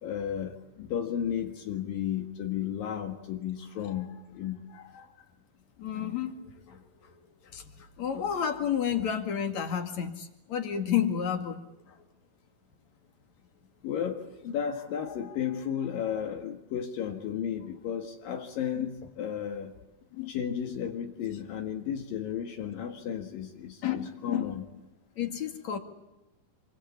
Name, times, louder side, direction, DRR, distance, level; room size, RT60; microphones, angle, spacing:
voice 1, 0.0-5.2 13.8-19.7 20.3-24.6, left 9 dB, 75° left, 3 dB, 3.4 m, -34 dB
voice 2, 5.8-7.1 7.5-12.0 18.8-18.9 20.1-20.3 23.8-24.5 25.2-25.8, left 8 dB, 55° left, 6 dB, 3.3 m, -31 dB
28.5 x 23.0 x 8.6 m, 0.97 s
omnidirectional pair, 4.1 m